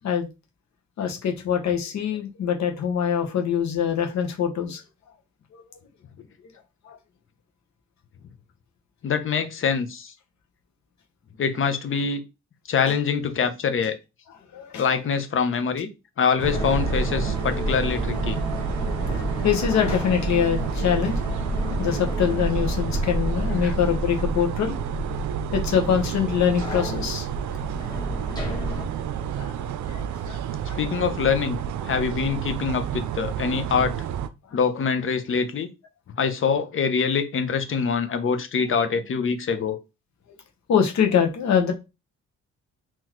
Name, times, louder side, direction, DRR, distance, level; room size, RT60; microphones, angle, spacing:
voice 1, 1.0-4.8 5.5-5.6 6.9-7.0 14.5-14.8 19.4-21.2 21.8-24.8 25.5-27.3 29.3-29.6 29.9-30.0 30.3-30.4 30.7-30.8 40.7-41.7, left 8 dB, 65° left, 1.1 m, -24 dB
voice 2, 9.0-10.1 11.4-12.2 12.7-14.0 14.8-15.9 16.2-18.4 23.6-23.7 30.8-31.6 31.9-33.9 34.5-35.7 36.2-39.8, left 6 dB, 45° left, 0.8 m, -24 dB
sound 1, 16.4-28.9, equal, 15° left, 1.4 m, -30 dB
sound 2, 16.4-34.3, right 9 dB, 70° right, 0.5 m, -30 dB
3.9 x 3.0 x 3.0 m
cardioid pair, 90°, 30 cm